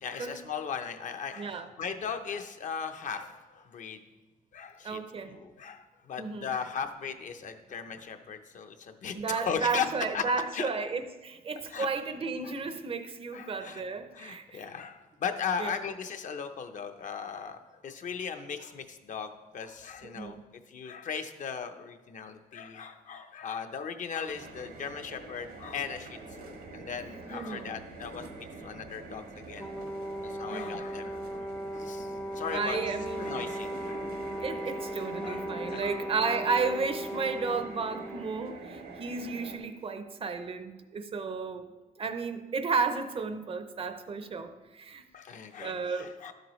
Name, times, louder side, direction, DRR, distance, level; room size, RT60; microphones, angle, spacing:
voice 1, 0.0-4.0 4.5-5.0 5.3-9.9 10.1-10.2 10.5-10.7 11.7-11.9 12.4-12.5 13.3-13.8 14.1-20.4 20.7-29.7 30.2-31.4 31.7-32.1 32.3-32.9 33.2-34.0 35.2-36.0 45.1-46.3, left 6 dB, 55° left, 7 dB, 0.6 m, -37 dB
voice 2, 1.4-1.7 4.8-5.4 6.2-6.5 9.1-14.6 15.6-15.8 20.1-20.4 27.3-27.7 30.5-30.8 32.5-33.4 34.4-41.7 42.0-45.1 45.6-46.3, right 4 dB, 35° right, 9 dB, 0.6 m, -33 dB
sound 1, 24.3-39.6, right 3 dB, 80° right, 1.4 m, -45 dB
Brass instrument, 29.6-38.3, equal, 10° left, 0.5 m, -38 dB
11.5 x 7.7 x 3.1 m, 1.2 s
wide cardioid pair, 140°, 16 cm